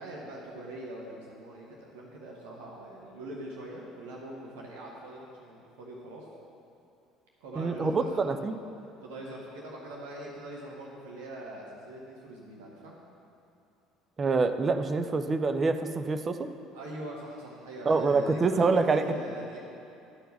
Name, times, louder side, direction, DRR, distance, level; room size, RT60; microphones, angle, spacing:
voice 1, 0.0-6.3 7.4-8.5 9.0-13.0 16.7-19.6, right 1 dB, 65° right, -3 dB, 1.0 m, -42 dB
voice 2, 7.6-8.5 14.2-16.5 17.9-19.0, right 4 dB, 30° right, 8 dB, 0.5 m, -26 dB
11.5 x 4.5 x 6.3 m, 2.7 s
figure-of-eight pair, 60°, 0 cm